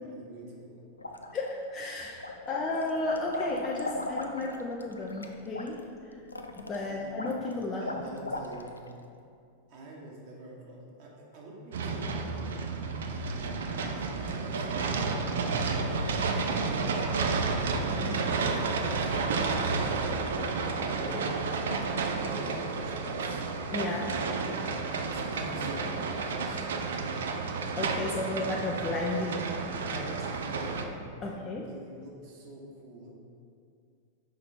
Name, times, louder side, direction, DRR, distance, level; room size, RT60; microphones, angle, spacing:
voice 1, 0.0-0.8 2.4-2.6 6.9-7.2 7.8-8.8 9.7-17.5 17.9-19.1 19.9-20.2 20.8-21.4 21.8-23.4 23.9-27.2 28.1-28.8 30.2-30.8 31.2-33.1, right 1 dB, 45° right, -3 dB, 1.5 m, -46 dB
sound 1, 1.0-1.8 2.2-8.9, left 2 dB, 80° left, 0.4 m, -38 dB
voice 2, 1.3-5.8 6.6-7.9 16.5-16.6 18.0-18.2 23.7-24.1 27.8-29.5 29.8-30.3 31.2-31.7, left 2 dB, 25° left, -3 dB, 0.6 m, -33 dB
sound 2, 11.7-30.8, right 4 dB, 60° right, 0.5 m, -31 dB
5.9 x 5.0 x 4.4 m, 2.4 s
figure-of-eight pair, 90°, 0 cm